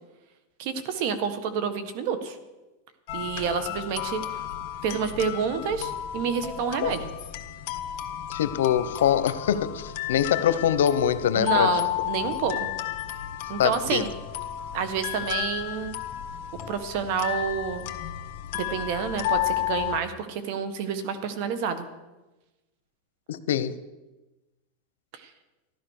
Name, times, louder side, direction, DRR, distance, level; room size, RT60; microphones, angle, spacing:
voice 1, 0.6-2.4 3.1-4.2 4.8-7.1 11.3-12.7 13.5-14.1 14.7-15.9 16.7-17.9 18.5-21.9 25.2-25.3, right 6 dB, 55° right, 11 dB, 1.6 m, -29 dB
sound 1, 3.1-20.0, left 13 dB, 55° left, 1.5 m, -32 dB
voice 2, 8.3-11.7 13.6-14.0 23.3-23.7, left 9 dB, 90° left, 14 dB, 0.9 m, -24 dB
14.0 x 12.0 x 6.6 m, 1.1 s
supercardioid pair, 135°, 0 cm